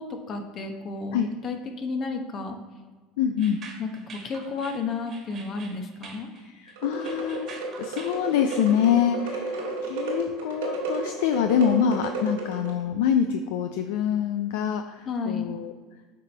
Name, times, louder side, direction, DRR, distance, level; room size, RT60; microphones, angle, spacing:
voice 1, 0.0-2.6 3.8-6.3 15.1-15.5, left 4 dB, 45° left, 4 dB, 1.0 m, -32 dB
voice 2, 3.2-3.6 6.3-15.7, left 8 dB, 75° left, 7 dB, 0.4 m, -25 dB
sound 1, 3.4-8.9, right 4 dB, 45° right, 1.5 m, -46 dB
sound 2, 6.8-12.8, right 2 dB, 85° right, 2.0 m, -32 dB
7.3 x 4.1 x 4.4 m, 1.4 s
hypercardioid pair, 85°, 0 cm